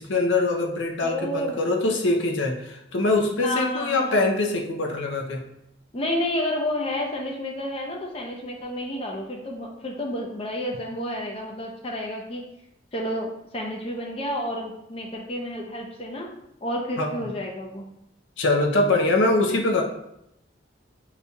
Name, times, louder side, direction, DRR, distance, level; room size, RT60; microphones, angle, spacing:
voice 1, 0.0-5.4 17.0-17.2 18.4-19.8, left 2 dB, 80° left, 2 dB, 0.6 m, -23 dB
voice 2, 1.0-1.6 3.4-4.2 5.9-12.4 12.9-16.3 16.6-17.9, left 1 dB, 30° left, -1 dB, 0.5 m, -30 dB
6.6 x 2.7 x 2.3 m, 0.81 s
head